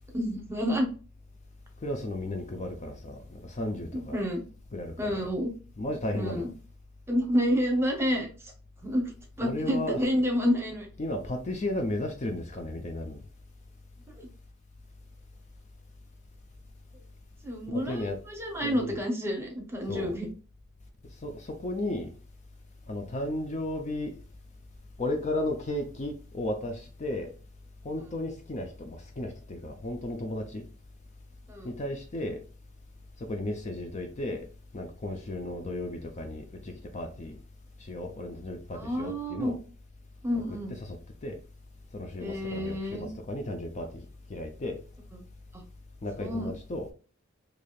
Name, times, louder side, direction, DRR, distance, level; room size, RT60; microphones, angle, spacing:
voice 1, 0.1-0.9 3.9-4.4 5.0-5.5 6.1-6.5 7.1-8.3 8.8-9.1 9.4-10.9 14.2-14.3 17.4-20.3 31.5-31.7 38.7-39.5 40.2-40.7 42.2-43.1 45.1-45.2 46.2-46.5, equal, 10° right, 0.8 m, -29 dB
voice 2, 1.8-4.2 4.7-5.3 5.8-6.5 9.4-10.0 11.0-13.2 17.7-18.2 18.6-19.0 19.9-20.2 21.2-22.1 22.9-24.2 25.0-27.3 27.8-30.6 31.6-32.4 33.2-34.4 34.7-37.4 37.8-39.6 40.5-41.0 41.2-41.4 41.9-44.8 46.0-46.9, left 1 dB, 35° left, 0.5 m, -34 dB
4.8 x 2.7 x 2.4 m
head